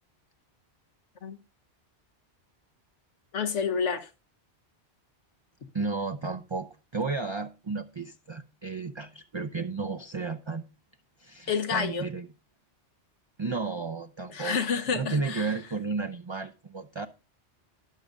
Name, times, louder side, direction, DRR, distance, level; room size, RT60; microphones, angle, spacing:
voice 1, 3.3-4.1 11.5-12.1 14.3-15.6, left 6 dB, 80° left, 1.4 m, -29 dB
voice 2, 5.7-10.6 11.2-12.3 13.4-14.6 14.9-17.1, right 4 dB, 40° right, 0.4 m, -33 dB
19.0 x 6.4 x 2.5 m
omnidirectional pair, 1.2 m